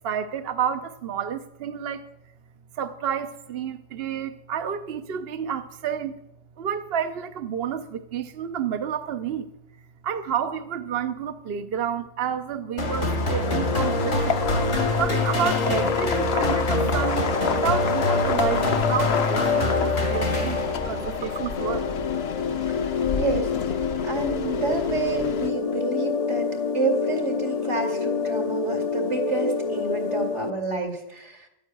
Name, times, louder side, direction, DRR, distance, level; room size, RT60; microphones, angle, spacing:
voice 1, 0.0-2.1 2.7-6.2 6.6-9.5 10.0-14.5 15.0-21.9, right 8 dB, 60° right, 8 dB, 0.9 m, -30 dB
sound 1, 12.8-21.1, left 2 dB, 85° left, 2.9 m, -26 dB
sound 2, 12.8-25.5, left 6 dB, 65° left, 1.0 m, -31 dB
sound 3, 13.4-30.5, left 5 dB, 40° left, 0.6 m, -27 dB
voice 2, 23.1-23.5 24.0-31.5, right 3 dB, 80° right, 3 dB, 2.9 m, -29 dB
11.5 x 9.2 x 9.1 m, 0.85 s
omnidirectional pair, 1.2 m